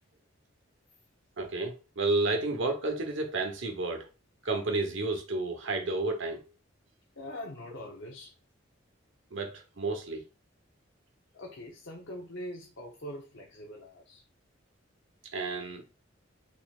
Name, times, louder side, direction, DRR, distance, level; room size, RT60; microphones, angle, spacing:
voice 1, 1.4-4.1 4.4-6.4 9.3-10.2 15.3-15.8, right 2 dB, 75° right, 1.1 m, -31 dB
voice 2, 7.2-8.3 11.3-14.2, left 1 dB, 70° left, 0.9 m, -43 dB
4.3 x 3.7 x 2.4 m
head